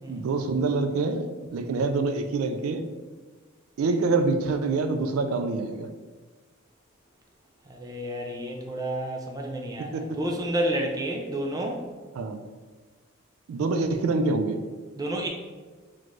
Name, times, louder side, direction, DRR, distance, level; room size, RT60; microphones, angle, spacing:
voice 1, 0.1-2.8 3.8-5.9 9.9-10.2 12.1-12.4 13.5-14.6, right 3 dB, 85° right, 7 dB, 0.4 m, -26 dB
voice 2, 7.7-11.8 15.0-15.3, right 1 dB, 20° right, 1 dB, 0.4 m, -30 dB
4.1 x 3.0 x 3.1 m, 1.4 s
head